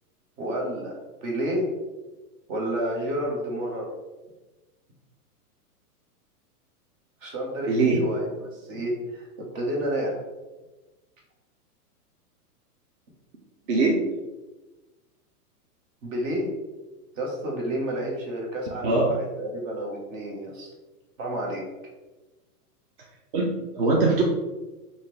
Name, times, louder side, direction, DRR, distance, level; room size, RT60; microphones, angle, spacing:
voice 1, 0.4-0.9 1.2-1.7 2.5-3.9 7.2-10.2 16.0-16.6 17.1-20.7 21.2-21.6, right 1 dB, 55° right, -1 dB, 1.4 m, -30 dB
voice 2, 7.7-8.0 13.7-14.0 18.8-19.1 23.3-24.2, right 3 dB, 35° right, -2 dB, 0.5 m, -21 dB
4.1 x 2.4 x 3.3 m, 1.1 s
hypercardioid pair, 135°, 47 cm